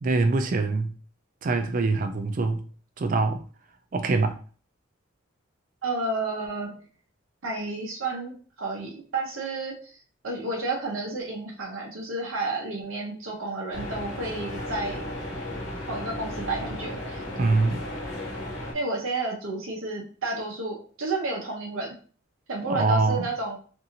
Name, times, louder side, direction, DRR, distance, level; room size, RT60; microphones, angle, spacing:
voice 1, 0.0-0.9 1.4-2.6 3.0-3.4 3.9-4.4 17.4-17.8 22.7-23.3, right 3 dB, 40° right, 0.3 m, -24 dB
voice 2, 5.8-6.8 7.4-10.0 10.2-15.1 15.9-17.2 18.7-22.0 22.5-23.6, right 2 dB, 85° right, 0.7 m, -31 dB
sound 1, 13.7-18.7, left 1 dB, 55° left, 1.1 m, -35 dB
2.6 x 2.5 x 2.8 m
head